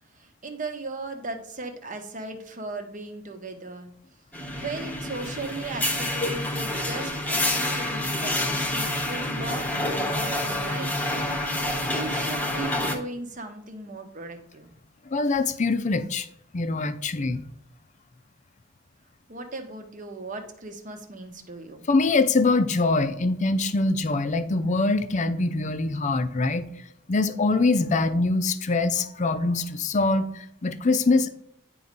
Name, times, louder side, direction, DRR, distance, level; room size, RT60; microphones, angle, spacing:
voice 1, 0.1-3.9 4.5-10.9 11.9-14.7 19.3-21.8, right 2 dB, 40° right, 5 dB, 1.0 m, -37 dB
sound 1, 4.3-12.9, left 1 dB, 10° left, 1.0 m, -28 dB
voice 2, 15.1-16.3 16.5-17.5 21.9-26.7 27.1-31.3, left 3 dB, 40° left, 11 dB, 0.5 m, -23 dB
9.3 x 3.2 x 5.2 m, 0.72 s
head